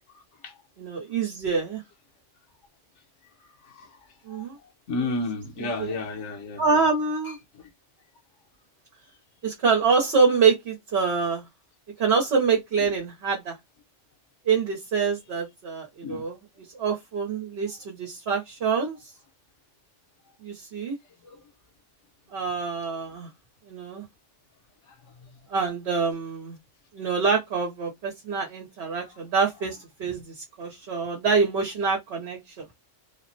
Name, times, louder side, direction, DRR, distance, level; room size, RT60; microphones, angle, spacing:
voice 1, 0.1-0.6 3.4-6.8 7.2-7.7 12.8-12.9 16.0-16.2 17.8-17.9 21.2-21.4 24.9-25.3 29.0-29.2, left 2 dB, 80° left, 1.1 m, -35 dB
voice 2, 0.8-1.8 4.3-4.5 5.8-5.9 6.6-7.4 9.4-11.4 12.0-13.6 14.5-16.4 16.8-19.0 20.4-21.0 22.3-23.3 23.7-24.0 25.5-26.5 26.9-32.6, right 5 dB, 65° right, 1.0 m, -25 dB
3.5 x 2.1 x 2.5 m
omnidirectional pair, 1.2 m